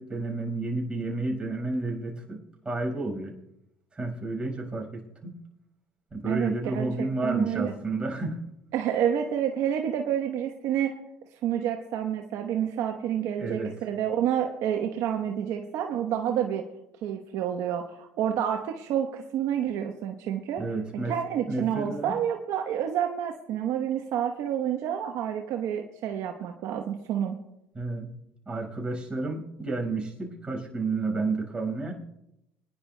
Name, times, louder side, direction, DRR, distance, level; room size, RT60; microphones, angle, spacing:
voice 1, 0.0-2.4 2.6-3.3 3.9-5.4 6.1-8.4 13.4-13.7 20.6-21.1 21.5-22.1 27.7-28.1 28.5-31.9, right 3 dB, 15° right, -1 dB, 4.9 m, -31 dB
voice 2, 6.2-7.7 8.7-10.9 11.4-16.6 17.0-20.6 20.9-27.4, right 9 dB, 60° right, 3 dB, 1.0 m, -29 dB
26.5 x 10.5 x 2.2 m, 0.87 s
supercardioid pair, 105°, 6 cm